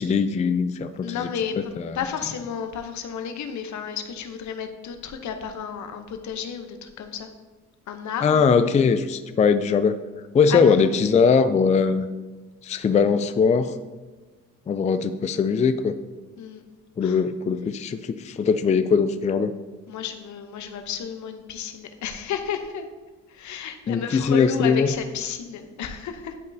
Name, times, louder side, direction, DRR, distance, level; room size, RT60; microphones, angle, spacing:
voice 1, 0.0-1.3 1.8-2.0 8.2-10.0 10.3-12.1 12.6-13.7 14.7-15.9 17.0-19.5 23.9-24.9, left 5 dB, 25° left, 10 dB, 0.3 m, -21 dB
voice 2, 1.0-7.3 7.9-8.4 10.5-10.9 16.4-16.6 17.0-17.2 19.9-22.9 23.3-26.5, left 7 dB, 70° left, 7 dB, 0.8 m, -32 dB
10.5 x 5.3 x 2.7 m, 1.3 s
cardioid pair, 90°, 30 cm